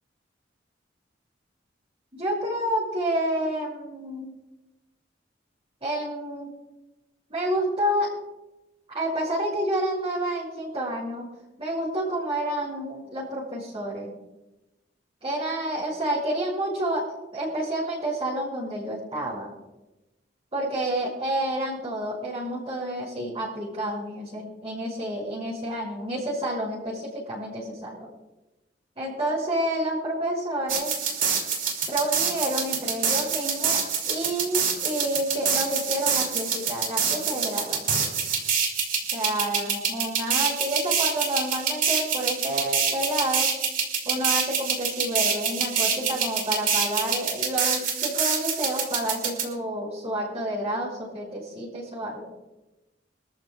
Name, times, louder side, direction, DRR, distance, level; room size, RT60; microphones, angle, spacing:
voice 1, 2.1-4.3 5.8-6.5 7.3-8.1 8.9-11.3 11.6-14.1 15.2-17.0 17.3-19.5 20.5-28.1 29.0-30.9 31.9-33.8 34.1-38.1 39.1-43.5 44.0-52.3, right 1 dB, 30° right, -9 dB, 6.4 m, -29 dB
sound 1, 30.7-49.4, right 6 dB, 50° right, 2.7 m, -26 dB
26.0 x 13.5 x 2.4 m, 1.0 s
head